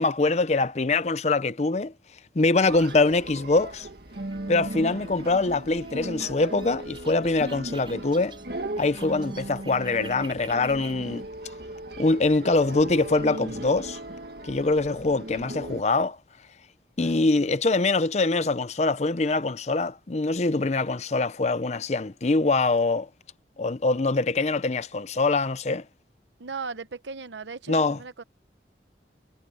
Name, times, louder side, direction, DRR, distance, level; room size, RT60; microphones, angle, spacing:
voice 1, 0.0-1.9 2.4-3.9 4.5-8.4 8.8-11.3 12.0-14.0 14.4-16.2 17.0-23.1 23.6-25.8 27.7-28.0, left 3 dB, 40° left, 0.6 m, -24 dB
sound 1, 2.7-15.8, right 1 dB, 60° right, 2.0 m, -37 dB
sound 2, 2.9-11.2, right 4 dB, 30° right, 5.8 m, -50 dB
voice 2, 26.4-28.2, right 4 dB, 90° right, 1.0 m, -37 dB
head